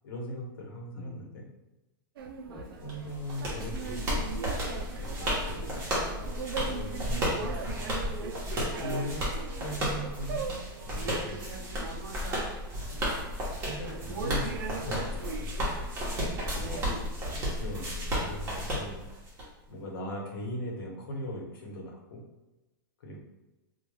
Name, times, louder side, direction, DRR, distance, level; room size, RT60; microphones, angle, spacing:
voice 1, 0.0-1.5 2.8-4.2 5.0-5.9 6.4-7.9 8.8-9.2 9.6-11.5 12.8-13.2 13.6-15.5 16.3-16.7 17.6-19.0 19.7-22.2 23.0-23.2, equal, 80° left, -2 dB, 0.9 m, -39 dB
voice 2, 1.0-1.3 2.5-2.8 8.9-9.0 16.6-17.4, left 2 dB, 5° left, -3 dB, 0.4 m, -45 dB
sound 1, 2.2-16.8, right 5 dB, 90° right, 0.4 m, -40 dB
sound 2, 2.9-19.4, equal, 25° right, 0.9 m, -33 dB
2.3 x 2.2 x 3.1 m, 1.0 s
supercardioid pair, 150°, 12 cm